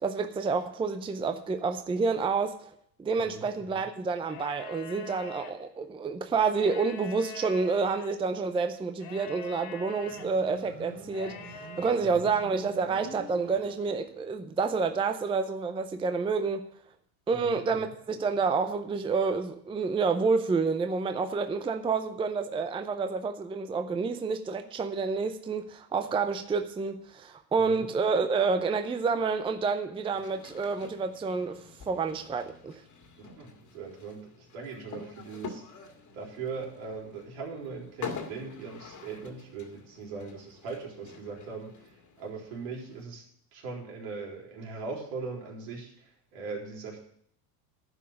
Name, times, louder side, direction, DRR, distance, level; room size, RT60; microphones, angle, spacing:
voice 1, 0.0-2.6 3.0-11.4 11.8-16.7 17.3-32.8, right 4 dB, 10° right, 0.5 m, -29 dB
voice 2, 3.2-3.8 12.0-12.3 17.3-17.9 27.6-27.9 33.2-35.6 36.1-43.2 43.5-47.0, right 4 dB, 75° right, 4.1 m, -40 dB
sound 1, 4.2-5.5 6.5-8.1 9.0-10.3 11.1-12.0, left 5 dB, 60° left, 2.2 m, -44 dB
Motorcycle, 10.0-14.3, right 6 dB, 60° right, 2.4 m, -46 dB
sound 2, 30.1-43.0, left 5 dB, 40° left, 2.0 m, -46 dB
10.5 x 5.6 x 8.7 m
supercardioid pair, 115°, 46 cm